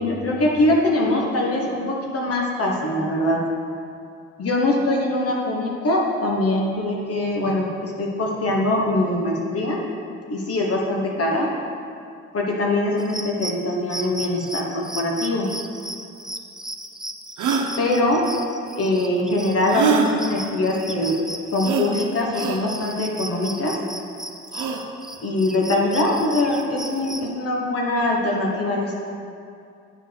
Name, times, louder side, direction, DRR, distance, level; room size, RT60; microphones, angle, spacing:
voice 1, 0.0-3.4 4.4-9.8 10.3-11.5 12.3-15.5 17.8-18.2 18.8-21.1 21.5-23.8 25.2-29.0, left 1 dB, 50° left, -2 dB, 1.3 m, -22 dB
sound 1, 13.0-27.3, right 1 dB, ahead, 0.5 m, -36 dB
sound 2, 16.4-16.5 17.4-17.7 19.7-20.1 21.6-21.9 22.3-22.6 24.5-24.8, right 6 dB, 80° right, 0.9 m, -22 dB
9.8 x 4.6 x 5.2 m, 2.5 s
cardioid pair, 90°, 30 cm